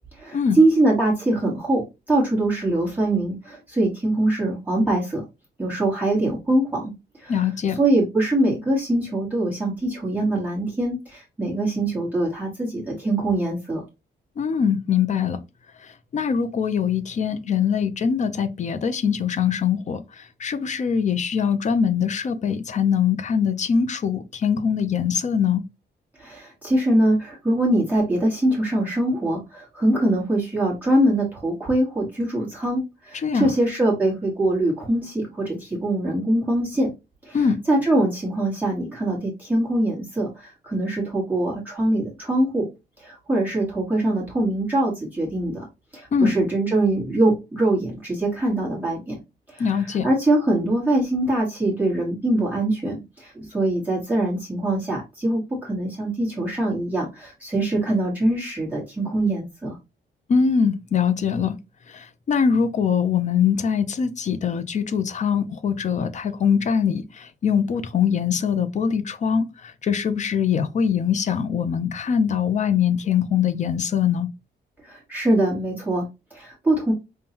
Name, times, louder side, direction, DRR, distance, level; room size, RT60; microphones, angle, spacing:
voice 1, 0.2-1.8 2.1-5.2 5.6-6.9 7.2-7.3 7.8-13.8 26.2-36.9 37.2-37.4 37.7-42.7 43.0-45.6 45.9-49.1 49.5-49.6 50.0-59.8 74.8-76.9, right 1 dB, 10° right, 1.2 m, -23 dB
voice 2, 7.3-7.8 14.4-15.4 15.8-25.6 33.1-33.5 37.3-37.6 46.1-46.3 49.6-50.1 60.3-61.6 61.9-74.3, left 7 dB, 40° left, 0.5 m, -22 dB
5.3 x 2.2 x 2.8 m
wide cardioid pair, 170°, 19 cm